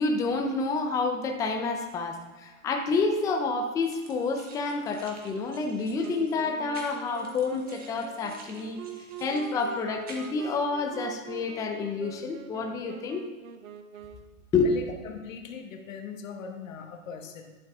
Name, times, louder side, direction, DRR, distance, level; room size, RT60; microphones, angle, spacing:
voice 1, 0.0-8.8 9.2-13.2 14.5-14.7, left 4 dB, 10° left, 3 dB, 0.4 m, -29 dB
sound 1, 3.8-10.4, right 3 dB, 20° right, 1.1 m, -50 dB
Wind instrument woodwind instrument, 6.0-14.4, right 8 dB, 80° right, 0.8 m, -44 dB
voice 2, 14.6-17.6, left 6 dB, 70° left, 5 dB, 1.2 m, -40 dB
11.0 x 7.4 x 2.3 m, 1.3 s
hypercardioid pair, 125°, 41 cm